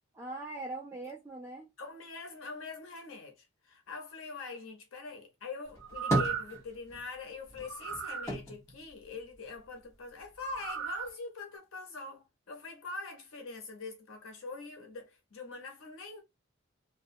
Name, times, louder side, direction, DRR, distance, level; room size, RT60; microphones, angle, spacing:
voice 1, 0.1-1.7, right 2 dB, 10° right, 0.3 m, -41 dB
voice 2, 1.8-16.2, left 3 dB, 85° left, 0.8 m, -43 dB
sound 1, 5.6-7.1 7.5-9.8 10.2-11.1, equal, 15° left, 1.0 m, -36 dB
sound 2, 5.8-6.6 7.6-8.3 10.4-11.1 11.5-11.6, right 7 dB, 65° right, 0.6 m, -36 dB
2.3 x 2.2 x 2.6 m
head